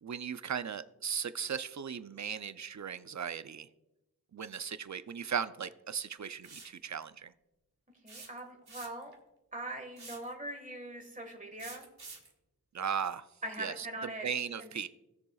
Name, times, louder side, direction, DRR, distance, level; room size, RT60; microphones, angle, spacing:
voice 1, 0.0-3.7 4.3-7.3 12.7-13.2 13.6-13.9 14.2-14.9, right 7 dB, 50° right, 13 dB, 0.5 m, -37 dB
sound 1, 6.4-6.8 8.1-9.1 10.0-10.3 11.6-12.3, right 3 dB, 85° right, 1.4 m, -48 dB
voice 2, 8.0-9.1 9.5-11.8 13.4-14.3 14.6-14.7, right 1 dB, 20° right, 3 dB, 1.6 m, -41 dB
18.5 x 6.7 x 2.4 m, 0.93 s
wide cardioid pair, 60°, 37 cm